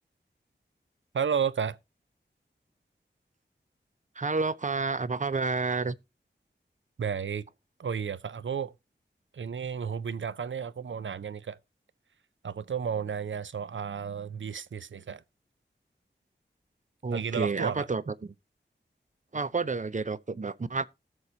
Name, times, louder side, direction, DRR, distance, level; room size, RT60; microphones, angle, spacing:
voice 1, 1.1-1.8 7.0-7.4 7.8-8.7 9.3-11.6 12.4-15.2 17.1-17.9, right 7 dB, 85° right, 0.5 m, -32 dB
voice 2, 4.2-5.9 17.0-18.1 19.3-20.9, right 4 dB, 40° right, 0.6 m, -30 dB
18.5 x 6.5 x 2.8 m
wide cardioid pair, 55°, 19 cm